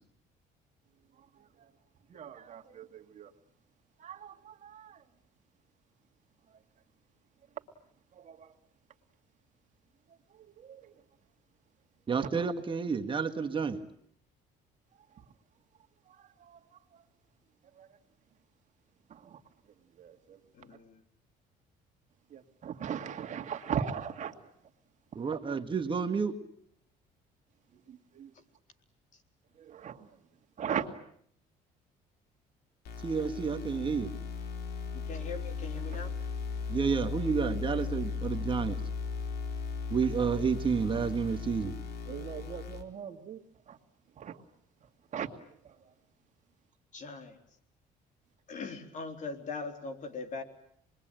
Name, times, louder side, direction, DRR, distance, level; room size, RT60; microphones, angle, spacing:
voice 1, 2.1-3.3 4.0-5.0 8.1-8.5 10.6-10.9 16.1-16.6 16.9-17.0 17.8-17.9 19.1-19.4 20.0-20.4 22.3-24.3 27.9-28.3 29.6-30.1 30.6-30.9 42.1-43.4 43.7-43.8 44.2-44.4 45.1-45.3 45.6-45.9, right 8 dB, 45° right, 2.2 m, -39 dB
voice 2, 12.1-13.8 25.1-26.3 33.0-34.1 36.7-38.8 39.9-41.8, right 5 dB, 30° right, 1.6 m, -30 dB
voice 3, 20.5-21.0 30.7-30.8 34.9-36.1 46.9-47.4 48.5-50.4, left 4 dB, 45° left, 3.7 m, -41 dB
sound 1, 32.8-42.8, left 5 dB, 65° left, 3.6 m, -37 dB
27.5 x 21.5 x 9.0 m
cardioid pair, 110°, 17 cm